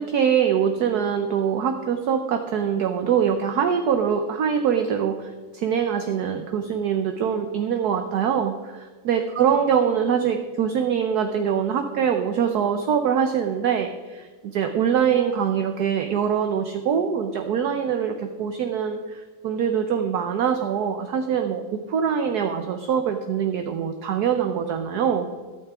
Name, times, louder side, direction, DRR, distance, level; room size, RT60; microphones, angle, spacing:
voice 1, 0.0-25.3, right 7 dB, 65° right, 6 dB, 1.2 m, -23 dB
14.0 x 12.5 x 3.6 m, 1.4 s
omnidirectional pair, 2.1 m